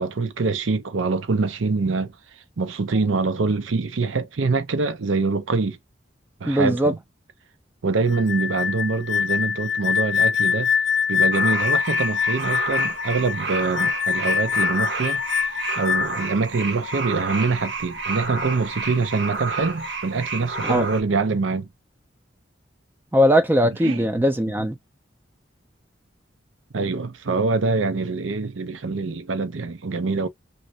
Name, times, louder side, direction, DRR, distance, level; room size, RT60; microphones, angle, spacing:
voice 1, 0.0-2.1 2.6-5.8 6.4-7.0 7.8-10.7 11.1-21.7 23.8-24.1 26.7-30.3, right 4 dB, 90° right, 0.6 m, -24 dB
voice 2, 6.5-6.9 20.6-20.9 23.1-24.8, equal, 10° right, 0.3 m, -19 dB
sound 1, 8.1-16.3, left 7 dB, 70° left, 0.3 m, -24 dB
sound 2, 11.3-21.0, right 4 dB, 65° right, 0.9 m, -30 dB
3.2 x 2.6 x 2.7 m
head